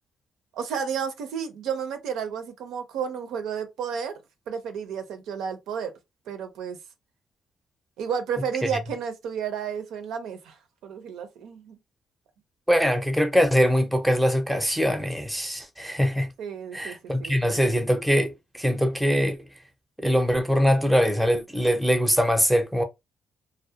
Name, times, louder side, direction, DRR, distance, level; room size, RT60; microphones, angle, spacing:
voice 1, 0.5-4.2 4.5-5.9 6.3-6.8 8.0-10.6 10.8-11.8 16.4-17.7, right 7 dB, 85° right, 0.5 m, -32 dB
voice 2, 12.7-16.3 16.7-19.4 20.0-22.8, equal, ahead, 0.6 m, -22 dB
2.2 x 2.0 x 2.7 m
cardioid pair, 90°, 0 cm